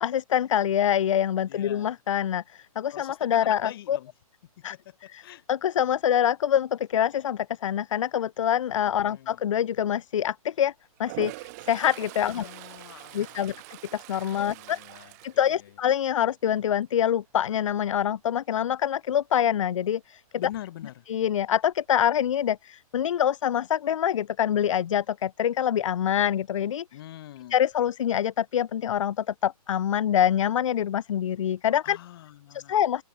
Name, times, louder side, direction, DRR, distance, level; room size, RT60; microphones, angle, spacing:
voice 1, 0.0-4.0 4.6-4.8 5.1-5.2 5.5-10.7 11.0-12.5 13.1-13.6 13.9-14.8 15.2-20.2 21.1-26.8 27.5-32.0 32.5-33.0, left 10 dB, 55° left, 0.7 m, -25 dB
voice 2, 1.5-1.9 2.9-4.1 4.7-5.4 9.1-9.4 12.3-13.6 14.3-15.7 20.4-21.0 26.9-27.6 31.8-32.8, left 13 dB, 40° left, 4.4 m, -44 dB
Toilet flush, 11.0-16.2 16.6-16.9 21.4-21.5 21.8-22.5, right 23 dB, 25° right, 4.0 m, -43 dB
hypercardioid pair, 165°, 19 cm